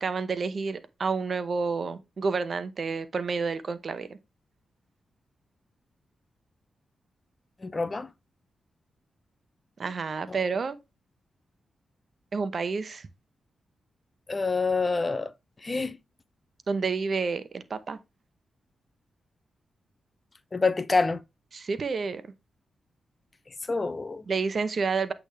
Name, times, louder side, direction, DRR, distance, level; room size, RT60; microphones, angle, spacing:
voice 1, 0.0-4.1 9.8-10.8 12.3-13.1 16.7-18.0 21.5-22.2 24.3-25.1, right 4 dB, 60° right, 0.9 m, -29 dB
voice 2, 7.6-8.1 10.3-10.4 14.3-15.3 15.6-16.0 20.5-21.2 23.5-24.2, left 3 dB, 35° left, 0.6 m, -27 dB
8.2 x 3.5 x 3.4 m
supercardioid pair, 50°, 0 cm